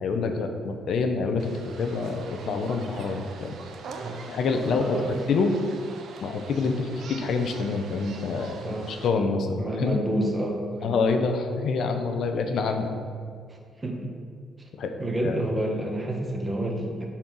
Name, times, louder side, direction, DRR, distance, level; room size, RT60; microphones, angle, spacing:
voice 1, 0.0-3.5 4.3-5.0 5.3-5.6 6.2-8.6 8.9-10.0 10.8-12.9 14.8-14.9 15.2-15.5, left 4 dB, 70° left, 5 dB, 0.9 m, -26 dB
sound 1, 1.4-9.1, right 4 dB, 70° right, 0.9 m, -43 dB
voice 2, 4.0-5.1 6.6-6.7 8.6-8.9 9.6-10.9 13.8-14.1 15.0-17.1, right 1 dB, 20° right, 0 dB, 1.5 m, -29 dB
8.7 x 4.5 x 6.3 m, 2.2 s
cardioid pair, 90°, 0 cm